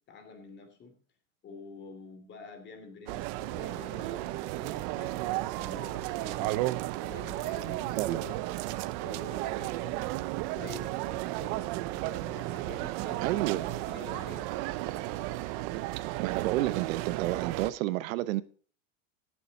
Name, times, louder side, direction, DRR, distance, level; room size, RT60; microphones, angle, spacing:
voice 1, 0.1-1.0 1.4-5.2 5.5-6.6 7.0-8.4 9.0-10.0 10.4-11.5 12.2-14.5, left 3 dB, 25° left, 2.6 m, -48 dB
sound 1, 3.1-17.7, right 17 dB, 35° right, 0.4 m, -34 dB
voice 2, 13.2-13.7 16.2-18.4, right 16 dB, 70° right, 0.8 m, -30 dB
17.0 x 7.2 x 3.9 m
supercardioid pair, 150°, 42 cm